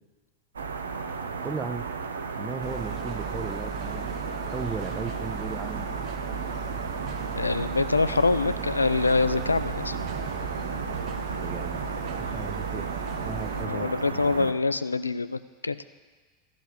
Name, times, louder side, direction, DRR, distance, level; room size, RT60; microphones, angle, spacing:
sound 1, 0.5-14.5, right 5 dB, 70° right, 0.7 m, -34 dB
voice 1, 1.4-1.9 2.4-4.1 4.5-5.9 11.3-14.5, right 4 dB, 20° right, 11 dB, 0.6 m, -37 dB
sound 2, 2.6-13.7, right 6 dB, 40° right, 0.9 m, -37 dB
voice 2, 7.4-9.9 13.6-15.9, left 3 dB, 80° left, 14 dB, 0.4 m, -25 dB
13.5 x 5.1 x 7.7 m, 1.4 s
figure-of-eight pair, 85°, 0 cm